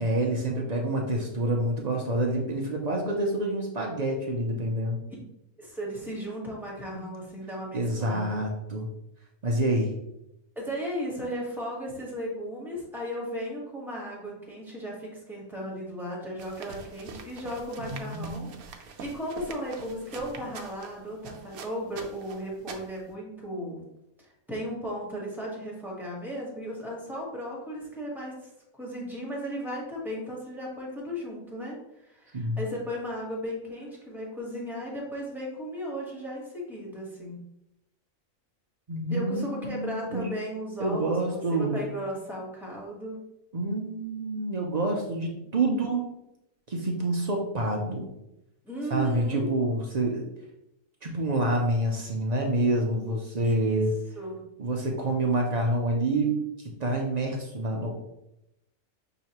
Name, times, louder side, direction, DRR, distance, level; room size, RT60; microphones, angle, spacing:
voice 1, 0.0-5.0 7.7-8.9 9.4-9.9 17.8-18.5 32.3-32.6 38.9-40.3 40.8-41.8 43.5-46.0 46.7-48.1 48.9-50.3 51.0-53.9 54.6-56.3 56.8-57.9, right 1 dB, 60° right, 0 dB, 0.4 m, -27 dB
voice 2, 5.6-8.3 10.5-23.8 24.5-28.5 28.8-31.8 32.0-37.4 39.1-43.2 48.6-49.5 53.3-53.9 54.2-54.4, equal, ahead, -4 dB, 1.1 m, -35 dB
sound 1, 16.4-23.1, right 5 dB, 80° right, 1.0 m, -45 dB
5.8 x 3.1 x 2.9 m, 0.84 s
omnidirectional pair, 1.5 m